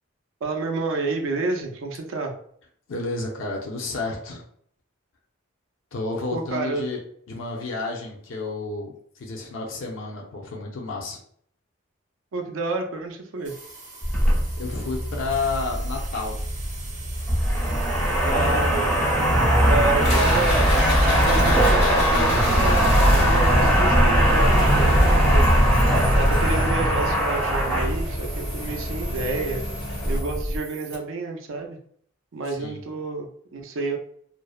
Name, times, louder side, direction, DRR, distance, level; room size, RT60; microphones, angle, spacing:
voice 1, 0.4-2.3 6.3-6.8 12.3-13.5 18.3-19.1 19.6-20.7 21.2-25.5 26.1-29.6 30.0-31.8 32.3-34.0, right 3 dB, 70° right, 4 dB, 0.4 m, -29 dB
voice 2, 2.9-4.4 5.9-7.0 7.3-11.2 14.6-16.4 18.4-18.6 19.5-20.1 32.4-32.8, left 3 dB, 70° left, 0 dB, 0.5 m, -31 dB
sound 1, 13.4-31.0, right 1 dB, 35° right, 0.7 m, -36 dB
sound 2, 14.0-30.6, equal, 5° left, 0.5 m, -21 dB
sound 3, 20.0-30.2, left 1 dB, 85° left, 1.0 m, -29 dB
2.6 x 2.0 x 2.3 m, 0.62 s
head